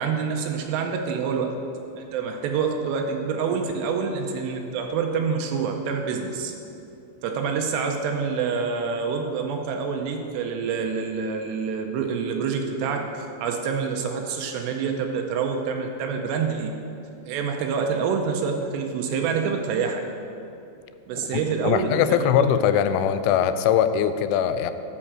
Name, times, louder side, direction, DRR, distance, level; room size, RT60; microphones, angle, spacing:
voice 1, 0.0-1.5 2.0-6.5 7.2-16.7 17.3-20.0 21.1-22.5, right 5 dB, 80° right, 3 dB, 2.5 m, -27 dB
voice 2, 21.3-24.7, left 9 dB, 85° left, 10 dB, 3.0 m, -21 dB
11.0 x 5.4 x 7.4 m, 2.7 s
omnidirectional pair, 5.6 m